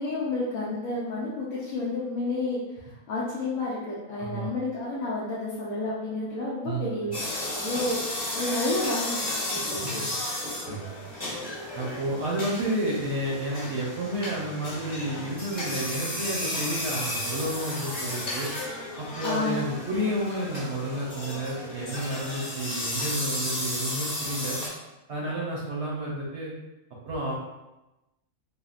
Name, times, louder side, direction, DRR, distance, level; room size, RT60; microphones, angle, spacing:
voice 1, 0.0-2.6 3.1-8.0 8.3-10.0 19.2-19.7 25.3-25.4, left 2 dB, 75° left, -7 dB, 1.0 m, -30 dB
voice 2, 4.2-4.5 6.6-7.1 10.7-11.1 11.7-18.5 19.0-24.6 25.1-26.5 27.0-27.4, right 1 dB, 60° right, -4 dB, 0.8 m, -31 dB
sound 1, 7.1-24.7, left 1 dB, 30° left, 1.1 m, -33 dB
3.5 x 2.0 x 2.4 m, 1.0 s
omnidirectional pair, 1.5 m